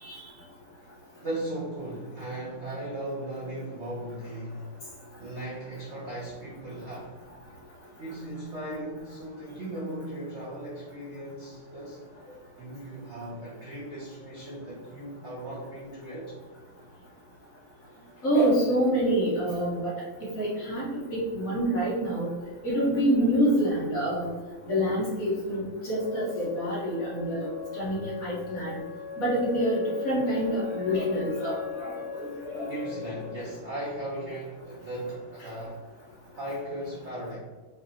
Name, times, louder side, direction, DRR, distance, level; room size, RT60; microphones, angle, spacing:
voice 1, 1.1-7.2 8.0-12.0 12.6-16.4 18.2-18.3 32.6-35.8 36.3-37.4, right 1 dB, 80° right, -5 dB, 0.6 m, -37 dB
voice 2, 18.2-19.9 20.4-22.3 22.6-24.3 24.7-28.8 29.2-32.9, equal, 45° left, -6 dB, 1.5 m, -27 dB
Wind instrument woodwind instrument, 25.9-33.6, left 8 dB, 60° left, 2.0 m, -38 dB
5.5 x 3.0 x 2.8 m, 1.3 s
omnidirectional pair, 2.4 m